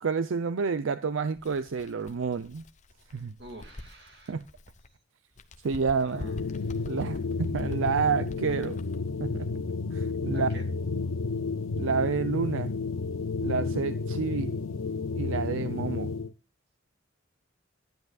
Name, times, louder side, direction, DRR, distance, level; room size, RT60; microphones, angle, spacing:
voice 1, 0.0-2.6 3.1-3.3 4.3-4.4 5.6-6.3 6.9-8.8 9.2-9.5 9.9-10.5 11.8-12.7 13.4-14.5 15.1-16.1, right 5 dB, 80° right, 0.5 m, -29 dB
Bird, 1.3-4.9 5.3-9.1, left 1 dB, 40° left, 0.8 m, -46 dB
voice 2, 3.4-4.4 6.0-6.8 10.3-10.7, right 1 dB, 55° right, 2.5 m, -47 dB
sound 1, 6.1-16.3, left 4 dB, 90° left, 0.5 m, -31 dB
12.0 x 10.5 x 2.4 m
head